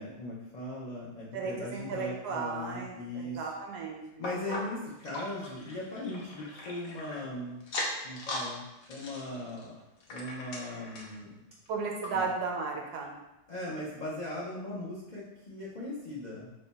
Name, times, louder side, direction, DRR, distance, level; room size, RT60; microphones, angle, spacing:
voice 1, 0.0-3.5 4.2-7.6 8.0-9.7 10.1-11.4 12.1-12.3 13.5-16.5, left 1 dB, 85° left, -8 dB, 0.3 m, -39 dB
voice 2, 1.3-4.2 11.7-13.1, right 4 dB, 75° right, 0 dB, 1.2 m, -35 dB
sound 1, 4.2-7.2 7.6-8.5 8.8-11.2 11.7-11.8 12.0-12.1 12.8-12.9, left 1 dB, 65° left, 1.0 m, -39 dB
3.3 x 2.2 x 3.9 m, 0.97 s
omnidirectional pair, 1.7 m